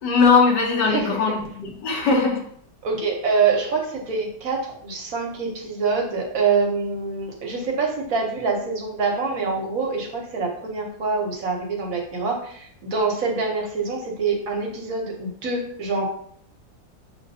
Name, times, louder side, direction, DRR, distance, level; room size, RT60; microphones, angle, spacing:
voice 1, 0.0-2.4, left 4 dB, 80° left, 0 dB, 1.6 m, -20 dB
voice 2, 2.8-16.1, right 4 dB, 60° right, 1 dB, 1.1 m, -25 dB
6.6 x 2.6 x 2.6 m, 0.64 s
omnidirectional pair, 1.8 m